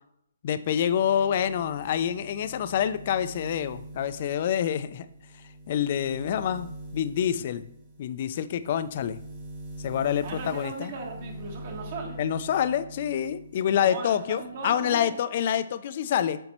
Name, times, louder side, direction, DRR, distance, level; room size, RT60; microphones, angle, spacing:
voice 1, 0.4-5.1 5.7-7.6 8.0-9.2 9.8-10.9 12.2-16.4, left 9 dB, 40° left, 12 dB, 0.3 m, -27 dB
sound 1, 0.6-13.6 13.9-14.9, right 1 dB, 20° right, 1.2 m, -44 dB
voice 2, 10.2-12.2 13.7-15.1, right 3 dB, 40° right, 2 dB, 1.2 m, -37 dB
7.8 x 4.3 x 3.0 m, 0.73 s
hypercardioid pair, 160°, 0 cm